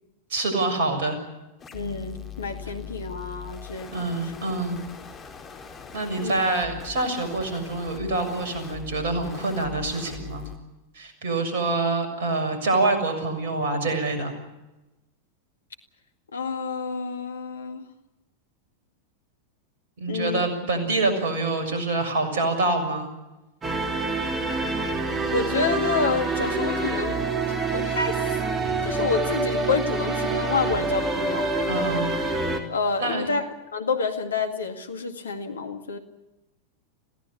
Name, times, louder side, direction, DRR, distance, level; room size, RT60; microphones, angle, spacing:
voice 1, 0.3-1.2 3.9-4.8 5.9-10.5 10.9-14.3 20.0-23.1 31.7-32.1 33.0-33.3, right 2 dB, 55° right, 7 dB, 6.8 m, -26 dB
sound 1, 1.6-10.6, left 8 dB, 25° left, 4.3 m, -41 dB
voice 2, 1.7-4.3 6.2-6.4 16.3-17.9 20.1-20.5 25.3-27.2 27.7-28.3 28.8-31.5 32.7-36.0, left 4 dB, 70° left, 6 dB, 2.1 m, -28 dB
sound 2, 23.6-32.6, right 3 dB, 20° right, 3.6 m, -26 dB
26.5 x 17.5 x 8.4 m, 1.0 s
figure-of-eight pair, 90°, 0 cm